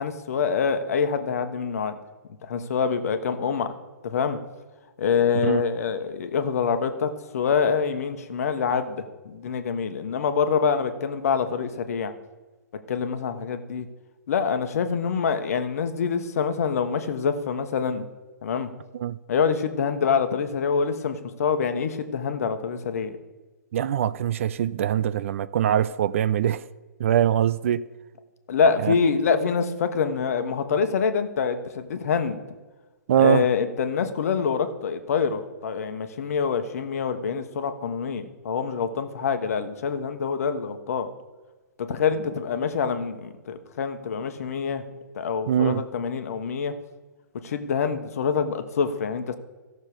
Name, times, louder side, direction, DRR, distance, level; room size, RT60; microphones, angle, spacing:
voice 1, 0.0-2.0 2.4-3.7 4.0-4.4 5.0-12.1 12.9-13.9 14.3-18.0 18.4-18.7 19.3-23.2 28.5-32.4 33.2-41.1 41.8-44.8 45.1-46.7 47.4-49.4, left 6 dB, 50° left, 1.2 m, -25 dB
voice 2, 23.7-26.6 27.0-27.8 28.8-28.9 33.1-33.5 45.5-45.8, right 10 dB, 45° right, 0.4 m, -22 dB
15.5 x 6.6 x 5.0 m
figure-of-eight pair, 125°, 10 cm